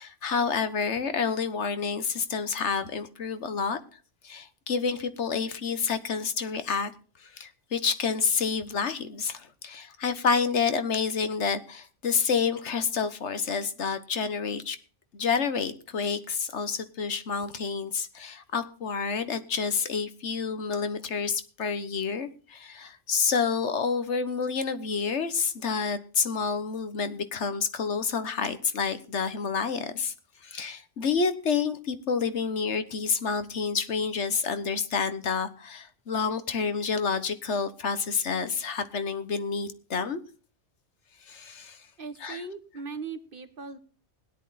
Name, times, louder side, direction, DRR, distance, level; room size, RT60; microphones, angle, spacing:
voice 1, 0.0-4.0 4.2-6.9 7.2-14.8 15.1-30.1 30.4-40.2 41.3-41.8 42.2-42.4, left 5 dB, 75° left, 1.5 m, -29 dB
voice 2, 42.0-43.8, right 4 dB, 50° right, 1.4 m, -39 dB
17.0 x 11.0 x 4.1 m
omnidirectional pair, 1.2 m